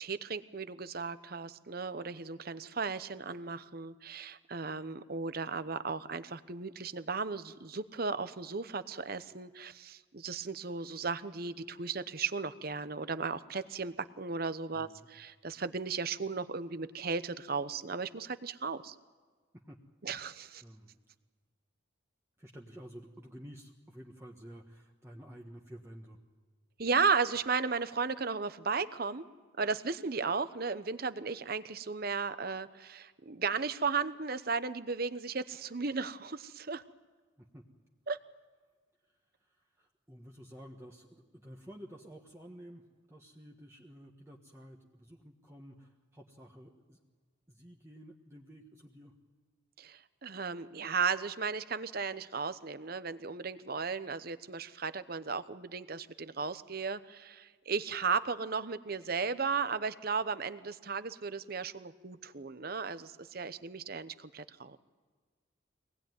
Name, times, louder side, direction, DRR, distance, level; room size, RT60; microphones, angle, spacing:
voice 1, 0.0-18.9 20.0-20.6 26.8-29.2 29.6-36.8 38.1-38.2 49.8-64.8, right 5 dB, 50° right, 13 dB, 0.9 m, -35 dB
voice 2, 14.7-15.1 19.5-19.8 20.2-21.0 22.4-26.2 37.4-37.6 39.0-47.0 47.5-49.1, equal, 15° right, -1 dB, 1.4 m, -52 dB
24.5 x 19.0 x 9.4 m, 1.5 s
head